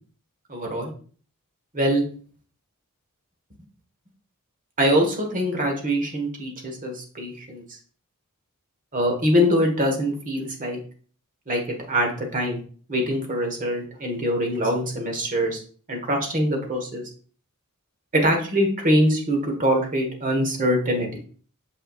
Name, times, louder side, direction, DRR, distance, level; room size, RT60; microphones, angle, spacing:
voice 1, 0.5-0.9 1.7-2.0 4.8-7.6 8.9-10.8 11.5-12.6 12.9-15.6 15.9-17.0 18.1-21.2, equal, 35° right, 2 dB, 1.5 m, -23 dB
7.3 x 5.5 x 2.5 m, 0.43 s
head